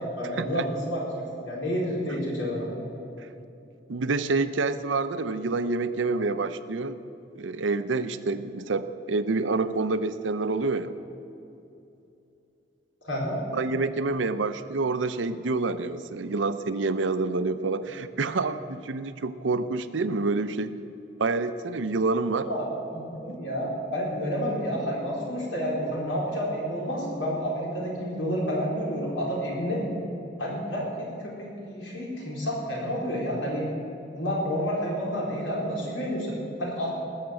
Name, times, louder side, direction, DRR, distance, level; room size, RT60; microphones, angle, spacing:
voice 1, 0.0-2.7 13.0-13.4 22.3-22.7 22.9-29.8 30.4-33.7 34.1-36.9, equal, 85° left, -3 dB, 4.2 m, -30 dB
voice 2, 3.9-7.0 7.3-10.9 13.5-20.8 21.2-22.5 23.3-23.4, right 3 dB, 80° right, 12 dB, 0.6 m, -27 dB
19.5 x 6.6 x 7.7 m, 2.8 s
head